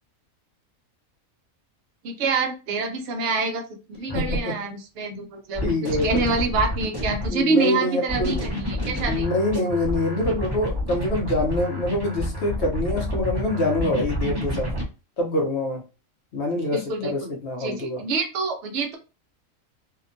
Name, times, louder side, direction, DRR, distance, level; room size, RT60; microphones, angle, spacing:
voice 1, 2.0-5.6 6.0-9.3 16.7-17.3 17.6-19.0, right 4 dB, 65° right, 3 dB, 0.9 m, -26 dB
sound 1, 3.9-4.4 5.6-7.4 8.1-14.8, left 1 dB, 25° right, 0.7 m, -29 dB
voice 2, 4.1-4.6 5.6-6.3 7.2-8.4 9.1-14.7 15.2-15.8 16.3-18.0, left 1 dB, 60° left, 3 dB, 0.9 m, -25 dB
2.8 x 2.1 x 2.5 m, 0.31 s
omnidirectional pair, 1.4 m